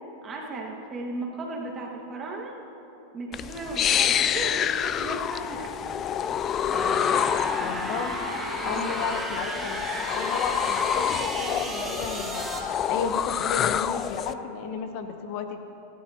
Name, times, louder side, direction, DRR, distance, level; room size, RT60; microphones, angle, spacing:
voice 1, 0.2-2.5 3.1-5.8 8.6-9.1 9.6-10.0, right 3 dB, 30° right, -1 dB, 1.8 m, -36 dB
sound 1, 3.3-14.3, left 9 dB, 35° left, 0.4 m, -28 dB
sound 2, 6.7-12.6, right 1 dB, 5° right, 1.9 m, -33 dB
voice 2, 7.6-8.2 8.6-12.4 12.8-15.6, left 6 dB, 55° left, 6 dB, 1.0 m, -33 dB
23.5 x 11.5 x 2.9 m, 3.0 s
hypercardioid pair, 115°, 0 cm